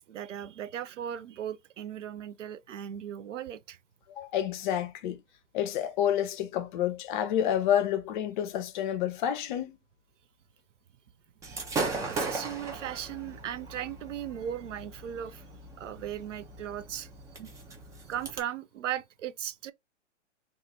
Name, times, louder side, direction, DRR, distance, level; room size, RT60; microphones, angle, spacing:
voice 1, 0.0-3.8 11.5-15.5 15.8-17.1 17.4-17.5 18.0-19.7, right 10 dB, 80° right, 0.5 m, -37 dB
voice 2, 4.2-5.2 5.5-9.8, left 10 dB, 40° left, 0.6 m, -29 dB
Gunshot gunfire / Fireworks, 11.4-18.4, right 3 dB, 10° right, 0.4 m, -38 dB
2.6 x 2.4 x 4.0 m
hypercardioid pair, 125°, 36 cm